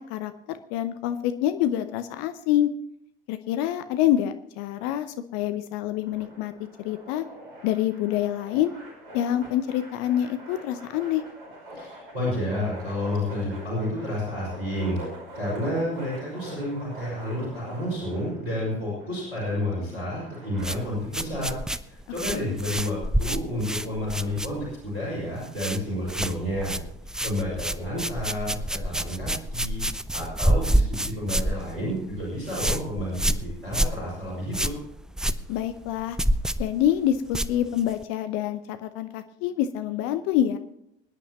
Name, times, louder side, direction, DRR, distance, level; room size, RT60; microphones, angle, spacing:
voice 1, 0.0-2.7 3.3-5.1 5.3-6.5 6.8-7.2 7.6-8.7 9.1-11.2 22.3-22.6 35.5-36.2 36.6-40.6, left 11 dB, 50° left, 10 dB, 0.8 m, -26 dB
sound 1, 6.0-20.7, right 1 dB, 65° right, 5.2 m, -44 dB
voice 2, 11.7-15.0 15.3-21.6 21.9-26.8 27.2-29.8 30.1-34.7, left 1 dB, 85° right, -7 dB, 6.0 m, -30 dB
sound 2, 20.6-24.9 25.2-25.8 26.1-38.0, right 1 dB, ahead, 0.4 m, -28 dB
24.5 x 10.0 x 3.0 m, 0.76 s
figure-of-eight pair, 70°, 30 cm